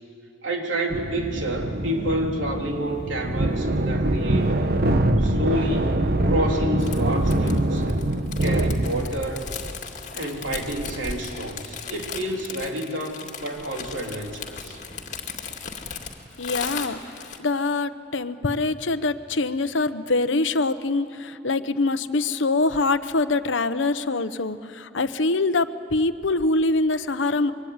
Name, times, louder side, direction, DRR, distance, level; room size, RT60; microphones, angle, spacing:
voice 1, 0.4-4.5 5.2-7.9 8.4-9.5 10.1-14.8, right 1 dB, 85° right, 1 dB, 3.5 m, -29 dB
sound 1, 0.9-9.3, right 1 dB, 50° right, 1.1 m, -24 dB
sound 2, 6.8-17.4, left 5 dB, 40° left, 2.3 m, -37 dB
voice 2, 16.4-17.0 17.4-27.5, left 3 dB, 80° left, 11 dB, 0.9 m, -24 dB
26.0 x 23.5 x 9.5 m, 2.9 s
head